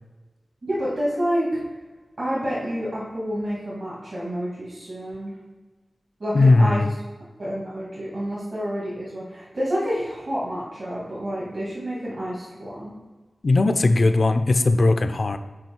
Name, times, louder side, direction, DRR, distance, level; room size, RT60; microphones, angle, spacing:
voice 1, 0.6-1.5 2.2-5.3 6.2-6.8 7.4-12.9, equal, 65° right, -7 dB, 2.0 m, -28 dB
voice 2, 6.3-6.9 13.4-15.4, left 2 dB, 60° left, 9 dB, 0.5 m, -18 dB
6.3 x 4.7 x 4.5 m, 1.2 s
wide cardioid pair, 70°, 0 cm